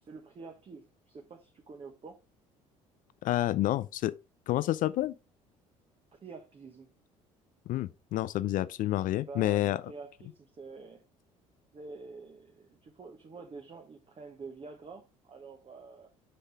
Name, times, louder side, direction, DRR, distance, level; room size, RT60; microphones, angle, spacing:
voice 1, 0.0-2.2 6.1-6.9 9.2-11.0 11.7-16.1, right 4 dB, 35° right, 1.3 m, -47 dB
voice 2, 3.2-4.1 4.5-5.2 7.7-9.8, left 14 dB, 50° left, 0.4 m, -29 dB
6.8 x 5.5 x 3.3 m
hypercardioid pair, 60°, 17 cm